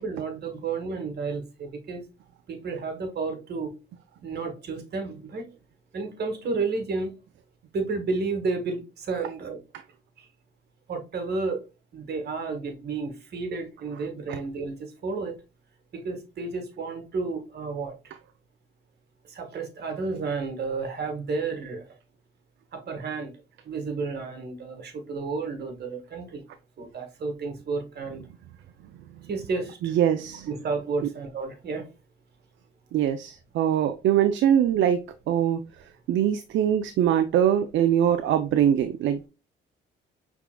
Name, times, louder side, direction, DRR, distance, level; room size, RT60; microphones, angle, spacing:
voice 1, 0.0-2.0 2.5-3.7 4.2-5.4 5.9-7.1 7.7-9.6 10.9-11.6 11.9-15.3 15.9-18.0 19.3-21.8 22.7-23.3 23.6-26.4 26.8-28.2 29.3-29.9 30.5-31.9, right 4 dB, 55° right, 1.5 m, -31 dB
voice 2, 29.8-30.5 32.9-35.0 35.3-35.6 36.1-39.3, right 10 dB, 70° right, 0.5 m, -22 dB
5.9 x 3.5 x 2.2 m
cardioid pair, 90°, 20 cm